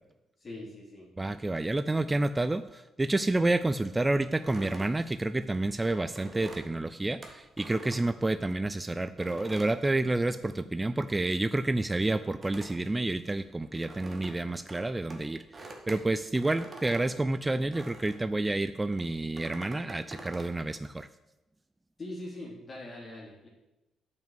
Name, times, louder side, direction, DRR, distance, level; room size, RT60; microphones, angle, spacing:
voice 1, 0.4-1.1 22.0-23.5, left 1 dB, 35° left, -5 dB, 3.3 m, -42 dB
voice 2, 1.2-21.1, right 2 dB, 15° right, 12 dB, 0.3 m, -29 dB
sound 1, 4.4-8.7 9.2-10.7 10.9-18.3 18.9-20.6, right 2 dB, 30° right, 1.7 m, -47 dB
8.9 x 5.8 x 7.9 m, 1.0 s
cardioid pair, 90°, 0 cm